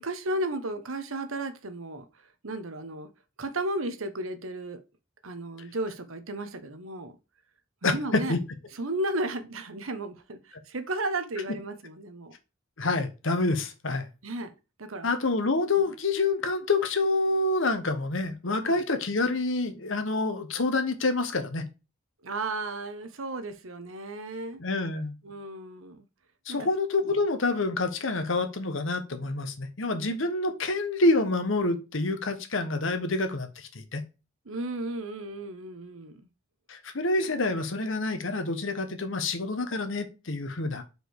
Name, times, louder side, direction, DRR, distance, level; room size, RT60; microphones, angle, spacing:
voice 1, 0.0-2.1 2.4-3.1 3.4-4.8 5.2-7.2 7.8-8.3 8.7-12.3 14.2-14.5 14.8-15.1 15.7-15.9 18.6-18.8 22.2-24.6 25.2-26.1 26.5-26.7 27.0-27.1 34.4-36.3, right 2 dB, 80° right, 1.1 m, -34 dB
voice 2, 7.8-8.4 12.8-14.1 15.0-21.7 24.6-25.2 26.5-34.0 36.7-40.8, left 2 dB, 65° left, 1.2 m, -27 dB
5.0 x 4.6 x 4.7 m
head